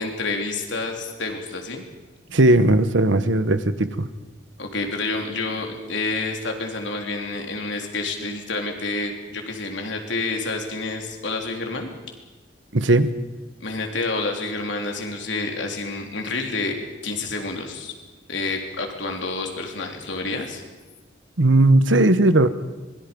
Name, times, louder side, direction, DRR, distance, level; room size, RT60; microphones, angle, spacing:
voice 1, 0.0-1.8 4.6-11.9 13.6-16.8 17.0-18.0 18.3-20.6, left 3 dB, 70° left, 3 dB, 3.6 m, -28 dB
voice 2, 2.3-4.1 12.7-13.1 21.4-22.5, right 2 dB, 75° right, 12 dB, 1.3 m, -17 dB
26.0 x 22.0 x 5.4 m, 1.2 s
head